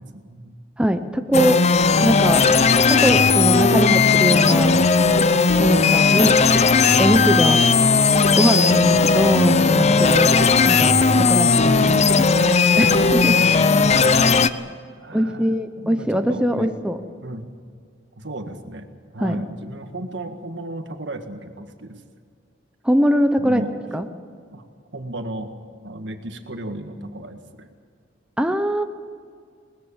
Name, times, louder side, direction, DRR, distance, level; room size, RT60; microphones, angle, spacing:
voice 1, 0.0-0.6 1.0-1.1 5.6-5.9 11.3-11.5 13.0-14.3 15.0-16.7 17.2-17.5 18.2-18.9 19.1-22.0 23.4-23.7 24.5-24.7 24.9-25.5 25.8-27.7, right 1 dB, 70° right, 6 dB, 1.8 m, -35 dB
voice 2, 0.8-1.6 2.0-2.4 2.9-4.7 5.6-6.4 7.0-7.6 8.4-10.3 10.7-12.0 12.8-13.3 15.1-17.0 19.2-19.4 22.8-23.6 23.9-24.1 28.4-28.8, equal, 5° right, 7 dB, 0.7 m, -21 dB
sound 1, 1.3-14.5, left 4 dB, 35° left, 0.6 m, -16 dB
21.0 x 20.0 x 7.2 m, 2.1 s
head